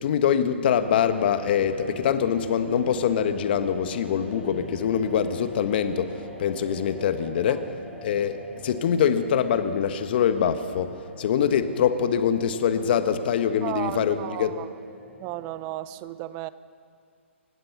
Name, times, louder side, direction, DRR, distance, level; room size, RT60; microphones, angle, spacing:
voice 1, 0.0-6.1 6.4-7.7 8.0-8.4 8.6-14.5, left 8 dB, 50° left, 10 dB, 1.3 m, -24 dB
sound 1, 0.8-15.7, equal, 5° left, 7.1 m, -43 dB
voice 2, 13.6-14.7 15.2-16.5, right 16 dB, 30° right, 16 dB, 0.7 m, -34 dB
28.0 x 16.0 x 5.9 m, 2.2 s
hypercardioid pair, 135°, 7 cm